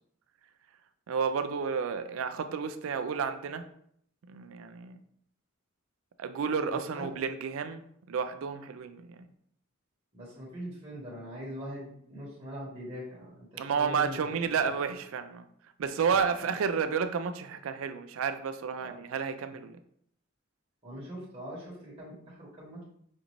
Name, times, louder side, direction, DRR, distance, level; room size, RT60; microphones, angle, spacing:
voice 1, 1.1-3.6 4.3-5.0 6.2-9.2 13.6-15.5 15.8-19.8, right 6 dB, 85° right, 10 dB, 0.4 m, -31 dB
voice 2, 10.1-14.4 14.6-14.7 16.1-16.2 18.8-18.9 20.8-22.8, equal, 30° right, -8 dB, 1.2 m, -42 dB
5.2 x 2.5 x 3.0 m, 0.69 s
head